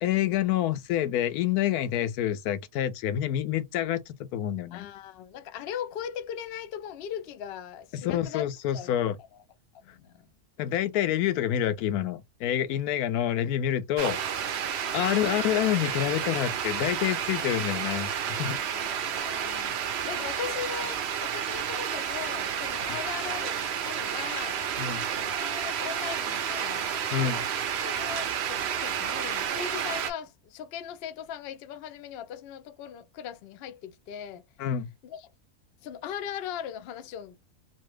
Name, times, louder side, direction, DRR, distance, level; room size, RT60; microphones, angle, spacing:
voice 1, 0.0-4.9 7.9-9.2 10.6-14.2 14.9-18.6 24.8-25.0 27.1-27.4 34.6-34.9, left 11 dB, 90° left, 1.1 m, -27 dB
voice 2, 4.7-8.4 8.7-9.0 9.7-10.3 13.4-13.5 14.8-15.0 18.7-19.7 20.0-24.6 25.1-26.8 27.2-27.5 27.8-34.4 35.0-35.3 35.8-37.4, left 9 dB, 70° left, 0.5 m, -39 dB
sound 1, 14.0-30.1, right 8 dB, 65° right, 0.7 m, -31 dB
3.0 x 2.2 x 3.1 m
omnidirectional pair, 1.5 m